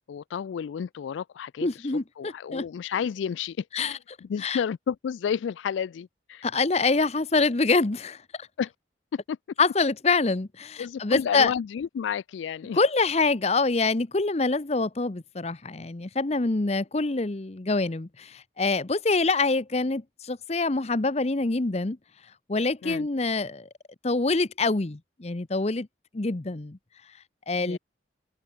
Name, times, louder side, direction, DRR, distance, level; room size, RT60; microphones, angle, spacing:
voice 1, 0.1-6.5 8.6-8.7 9.1-9.4 10.8-12.8 22.8-23.1 27.6-27.8, left 7 dB, 90° left, 0.3 m, -31 dB
voice 2, 1.6-2.6 3.7-4.0 4.4-4.6 6.4-8.2 9.6-11.5 12.7-22.0 22.5-23.7 24.0-25.9 26.1-26.8 27.5-27.8, left 3 dB, 35° left, 0.8 m, -25 dB
open air
head